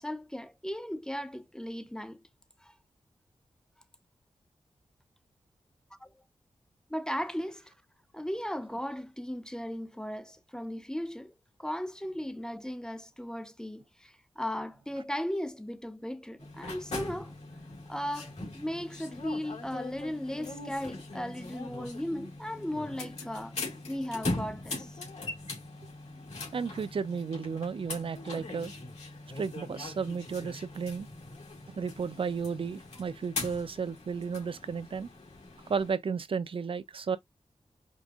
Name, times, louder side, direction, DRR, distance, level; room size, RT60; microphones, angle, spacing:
voice 1, 0.0-2.2 2.6-2.7 5.9-6.2 6.9-7.7 8.1-11.3 11.6-17.3 17.9-23.6 23.9-25.0, equal, 5° left, 0.5 m, -36 dB
sound 1, 16.4-35.9, left 2 dB, 80° left, 2.1 m, -41 dB
voice 2, 26.5-28.7 29.4-31.1 31.8-35.1 35.7-37.2, right 5 dB, 55° right, 0.5 m, -33 dB
5.2 x 2.5 x 2.4 m
wide cardioid pair, 80°, 11 cm